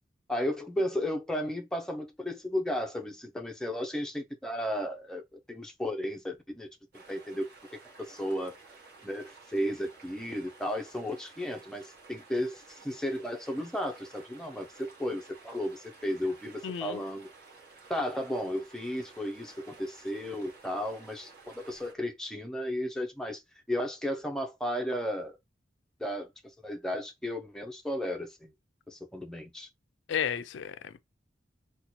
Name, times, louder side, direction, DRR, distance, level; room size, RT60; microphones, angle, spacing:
voice 1, 0.3-6.7 6.9-7.5 8.0-8.6 9.0-17.3 17.9-23.4 23.7-25.4 26.0-28.5 28.9-29.7, equal, 5° left, 0.4 m, -34 dB
sound 1, 6.9-21.9, right 4 dB, 55° right, 1.0 m, -54 dB
voice 2, 16.6-17.0 30.1-31.0, left 8 dB, 85° left, 0.4 m, -33 dB
2.8 x 2.2 x 4.1 m
head